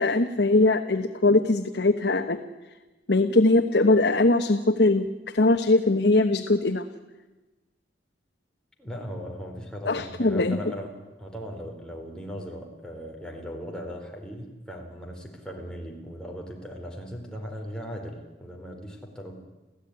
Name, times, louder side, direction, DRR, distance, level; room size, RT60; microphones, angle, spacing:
voice 1, 0.0-2.4 3.1-5.1 5.3-6.8 9.9-10.6, left 2 dB, 65° left, 5 dB, 1.2 m, -21 dB
voice 2, 8.8-19.4, equal, 5° left, 0 dB, 4.3 m, -38 dB
30.0 x 15.5 x 10.0 m, 1.2 s
head